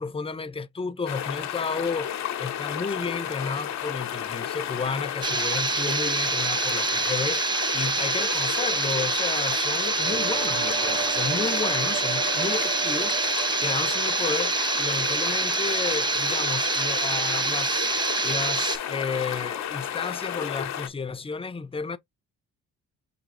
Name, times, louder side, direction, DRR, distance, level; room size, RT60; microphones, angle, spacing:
voice 1, 0.0-13.2 13.6-17.9 18.2-22.0, left 4 dB, 20° left, 0.8 m, -32 dB
sound 1, 1.1-20.9, left 10 dB, 65° left, 1.0 m, -32 dB
sound 2, 5.2-18.8, right 4 dB, 15° right, 0.4 m, -26 dB
sound 3, 9.9-15.9, right 9 dB, 85° right, 1.4 m, -36 dB
6.1 x 2.7 x 2.6 m
cardioid pair, 90°, 30 cm